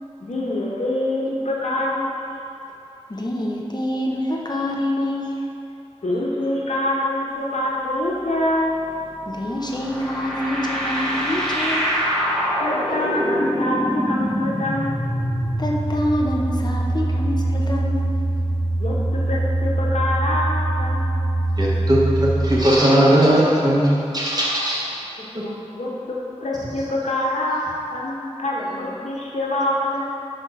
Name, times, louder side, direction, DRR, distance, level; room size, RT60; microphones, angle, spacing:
voice 1, 0.2-2.2 6.0-8.8 12.6-15.2 18.8-21.2 25.2-26.2 26.4-30.0, left 1 dB, 85° left, -4 dB, 1.1 m, -25 dB
voice 2, 3.1-5.4 9.3-11.9 15.6-18.2, left 1 dB, 35° left, -2 dB, 0.9 m, -26 dB
sound 1, 8.7-22.6, right 1 dB, 5° left, 1.3 m, -24 dB
voice 3, 21.6-24.9 25.3-25.4, right 1 dB, 35° right, -6 dB, 1.5 m, -18 dB
5.3 x 4.5 x 6.2 m, 2.8 s
wide cardioid pair, 50°, 12 cm